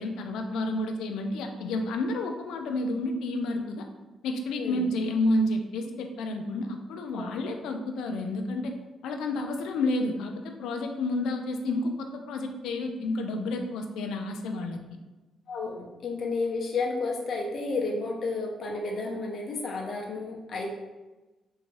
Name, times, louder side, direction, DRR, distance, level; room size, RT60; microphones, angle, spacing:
voice 1, 0.0-3.9 4.2-8.7 9.0-14.8, left 2 dB, 85° left, 5 dB, 0.4 m, -30 dB
voice 2, 4.6-4.9 7.1-7.3 15.5-20.7, left 3 dB, 55° left, 0 dB, 0.7 m, -31 dB
3.4 x 2.8 x 3.1 m, 1.1 s
cardioid pair, 90°, 0 cm